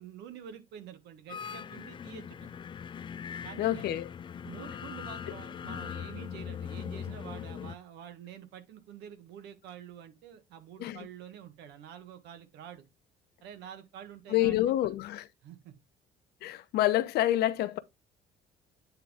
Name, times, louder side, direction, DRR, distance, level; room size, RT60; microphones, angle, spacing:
voice 1, 0.0-2.5 3.4-4.0 4.4-12.8 13.4-14.6 14.8-14.9 15.4-15.7, right 9 dB, 85° right, 1.6 m, -47 dB
sound 1, 1.3-7.7, left 8 dB, 30° left, 0.4 m, -40 dB
voice 2, 3.6-4.1 10.8-11.0 14.3-15.3 16.4-17.8, left 14 dB, 75° left, 0.8 m, -27 dB
8.9 x 3.7 x 3.5 m
cardioid pair, 110°, 17 cm